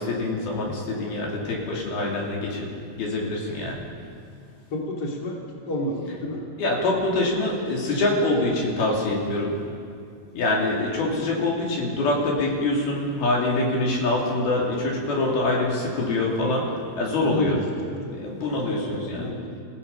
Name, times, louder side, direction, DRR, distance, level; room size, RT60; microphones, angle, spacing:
voice 1, 0.0-2.7 2.9-3.8 6.6-9.6 10.3-17.6 18.1-19.3, left 2 dB, 70° left, -2 dB, 4.8 m, -25 dB
voice 2, 4.7-6.5 17.2-18.2 18.6-19.6, equal, 30° left, -1 dB, 2.6 m, -31 dB
28.0 x 16.5 x 5.6 m, 2.3 s
omnidirectional pair, 4.5 m